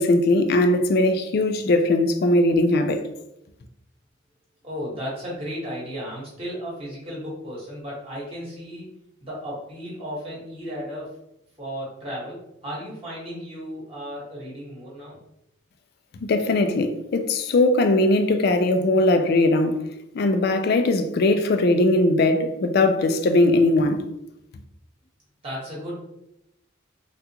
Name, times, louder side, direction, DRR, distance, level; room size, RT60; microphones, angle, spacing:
voice 1, 0.0-3.0 16.2-19.9 20.1-24.1, left 2 dB, 55° left, 0.3 m, -20 dB
voice 2, 4.6-8.9 9.2-11.1 11.6-15.2 25.4-26.0, equal, 30° right, 1.0 m, -34 dB
3.5 x 2.4 x 2.8 m
head